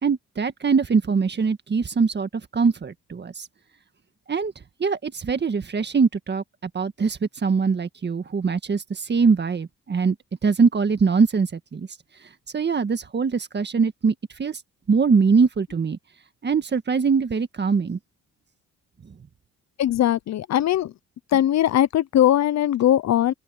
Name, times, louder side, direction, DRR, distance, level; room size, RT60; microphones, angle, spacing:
voice 1, 0.0-3.5 4.3-4.5 4.8-6.4 6.7-10.1 10.4-11.9 12.5-14.6 14.9-16.0 16.4-18.0, right 5 dB, 35° right, 1.7 m, -22 dB
voice 2, 19.8-20.9 21.3-23.3, left 11 dB, 60° left, 0.8 m, -20 dB
open air
cardioid pair, 90°, 30 cm